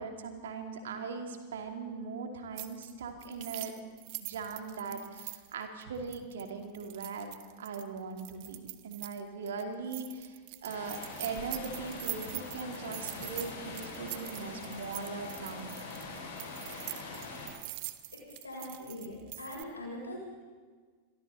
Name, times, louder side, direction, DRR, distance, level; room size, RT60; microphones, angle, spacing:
voice 1, 0.0-3.7 4.2-7.3 7.6-15.8, right 4 dB, 60° right, 5 dB, 2.7 m, -40 dB
sound 1, 2.6-2.9 3.2-9.2 9.5-9.6 9.9-19.6, right 20 dB, 45° right, 1.1 m, -44 dB
sound 2, 10.7-17.5, left 3 dB, 55° left, 6.3 m, -43 dB
voice 2, 18.1-20.3, left 1 dB, 80° left, -2 dB, 7.8 m, -42 dB
28.0 x 22.5 x 4.2 m, 1.5 s
figure-of-eight pair, 90°, 0 cm